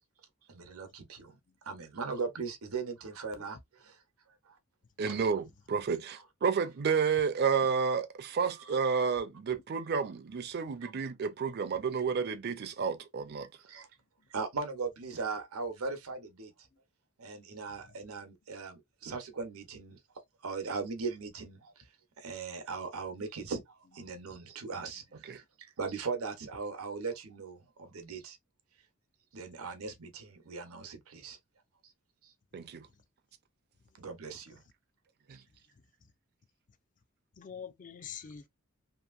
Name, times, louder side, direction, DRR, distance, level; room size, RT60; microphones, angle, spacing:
voice 1, 0.5-1.3 1.7-3.6 5.1-5.2 8.4-8.8 9.7-9.8 10.8-10.9 13.7-13.9 14.3-16.5 17.2-20.0 20.4-21.7 22.2-23.6 23.9-25.0 25.3-25.4 25.8-28.4 29.3-31.4 34.0-34.6, right 4 dB, 85° right, 0.7 m, -39 dB
voice 2, 5.0-13.5 25.2-25.4 32.5-32.9 35.3-35.4, right 6 dB, 50° right, 0.4 m, -31 dB
voice 3, 37.4-38.5, left 7 dB, 40° left, 0.4 m, -46 dB
2.8 x 2.5 x 2.4 m
head